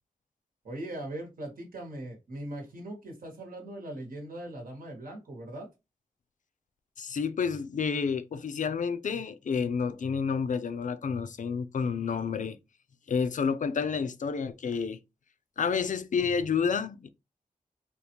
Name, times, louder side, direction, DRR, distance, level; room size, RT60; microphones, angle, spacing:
voice 1, 0.6-5.7, right 1 dB, 80° right, 1.3 m, -40 dB
voice 2, 7.0-12.6 13.1-15.0 15.6-17.1, left 6 dB, 60° left, 0.4 m, -29 dB
3.5 x 2.4 x 2.8 m
wide cardioid pair, 95°, 14 cm